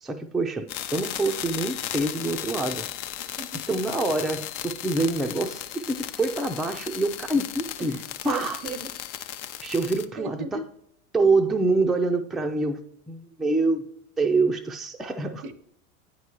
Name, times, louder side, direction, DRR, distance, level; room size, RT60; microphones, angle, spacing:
voice 1, 0.0-2.9 3.7-8.6 9.6-10.6 11.1-13.8 14.2-15.4, right 3 dB, ahead, 4 dB, 0.3 m, -26 dB
sound 1, 0.7-10.1, left 12 dB, 65° left, 0.6 m, -35 dB
voice 2, 3.2-3.8 7.8-8.0 8.2-8.9 10.2-10.6 15.4-15.5, right 3 dB, 85° right, 13 dB, 0.8 m, -36 dB
8.8 x 4.8 x 2.9 m, 0.71 s
hypercardioid pair, 85°, 41 cm